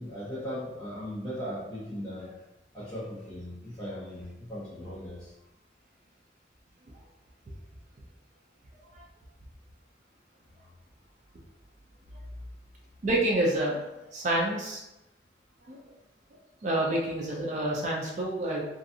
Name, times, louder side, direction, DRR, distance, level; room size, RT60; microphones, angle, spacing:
voice 1, 0.0-2.3 2.7-5.3, equal, 20° left, -12 dB, 0.9 m, -38 dB
voice 2, 13.0-13.8 14.1-14.8 15.7-15.8 16.6-18.6, right 1 dB, 40° right, -2 dB, 0.4 m, -28 dB
2.6 x 2.4 x 2.6 m, 0.94 s
head